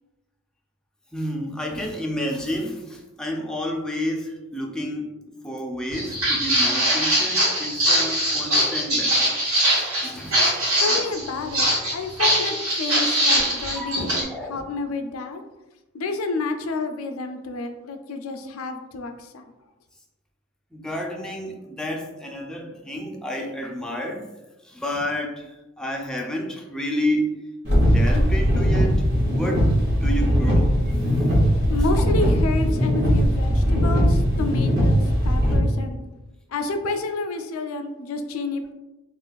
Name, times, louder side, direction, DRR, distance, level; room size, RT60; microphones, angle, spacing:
voice 1, 1.1-5.1 5.4-9.3 10.0-10.5 13.7-13.9 14.3-14.6 20.7-24.3 24.7-25.5 25.8-27.3 27.8-29.0 29.4-29.7 30.0-30.7 31.2-31.3, equal, 5° left, 0 dB, 0.4 m, -30 dB
Walk footsteps, 5.9-14.2, right 1 dB, 85° right, 1.3 m, -22 dB
voice 2, 10.8-15.4 15.9-19.4 31.7-36.0 36.5-38.7, left 3 dB, 75° left, 6 dB, 0.4 m, -29 dB
sound 1, 27.6-35.6, equal, 55° right, 1.0 m, -19 dB
2.4 x 2.4 x 3.8 m, 1.1 s
head